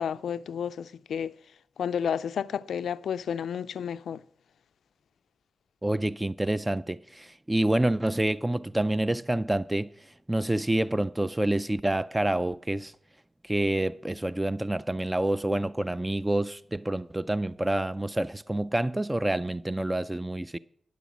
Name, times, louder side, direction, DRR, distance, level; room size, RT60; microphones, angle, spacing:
voice 1, 0.0-1.3 1.8-4.2, left 8 dB, 85° left, 0.3 m, -31 dB
voice 2, 5.8-9.9 10.3-12.9 13.4-20.6, right 1 dB, 15° right, 0.3 m, -27 dB
9.4 x 8.2 x 5.9 m
cardioid pair, 50°, 0 cm